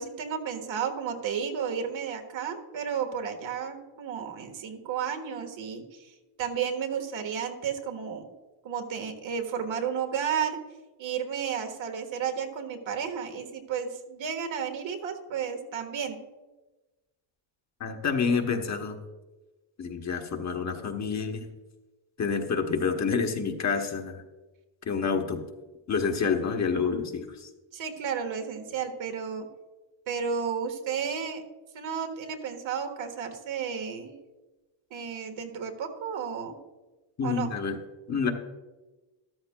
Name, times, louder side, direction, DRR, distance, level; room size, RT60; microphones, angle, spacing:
voice 1, 0.0-8.2 8.6-10.6 11.0-16.2 27.7-29.5 30.1-31.4 31.7-34.2 34.9-36.5 37.2-37.5, right 7 dB, 70° right, 5 dB, 1.5 m, -32 dB
voice 2, 17.8-19.0 19.8-21.5 22.2-24.2 24.9-25.4 25.9-27.5 37.2-37.8 38.1-38.3, left 5 dB, 35° left, 4 dB, 1.0 m, -28 dB
13.5 x 13.0 x 2.2 m, 1.2 s
cardioid pair, 150°, 48 cm